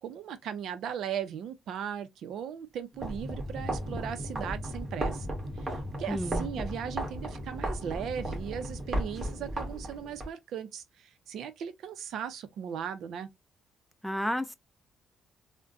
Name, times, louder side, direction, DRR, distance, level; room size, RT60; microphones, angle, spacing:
voice 1, 0.0-5.3 5.6-13.3, right 8 dB, 75° right, 0.6 m, -38 dB
sound 1, 2.9-10.3, right 1 dB, 30° right, 1.4 m, -35 dB
voice 2, 6.1-6.5 14.0-14.5, equal, ahead, 0.4 m, -31 dB
3.6 x 2.2 x 2.5 m
cardioid pair, 90°, 0 cm